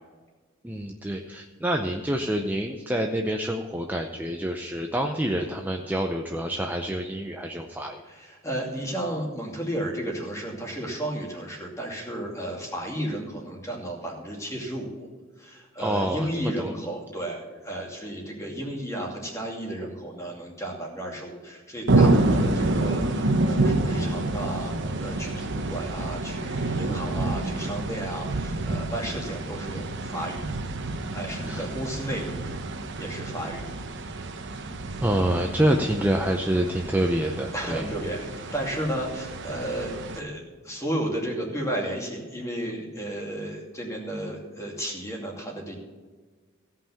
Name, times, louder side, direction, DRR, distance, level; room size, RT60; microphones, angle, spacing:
voice 1, 0.6-8.0 15.8-16.7 31.5-31.7 35.0-37.9, right 1 dB, 10° right, 2 dB, 0.6 m, -27 dB
voice 2, 8.1-15.1 15.4-24.7 25.0-30.4 31.1-32.4 33.0-33.7 37.5-45.7, right 1 dB, 15° left, 0 dB, 2.5 m, -33 dB
sound 1, 21.9-40.2, right 2 dB, 60° right, 1.0 m, -28 dB
16.5 x 5.7 x 7.0 m, 1.4 s
head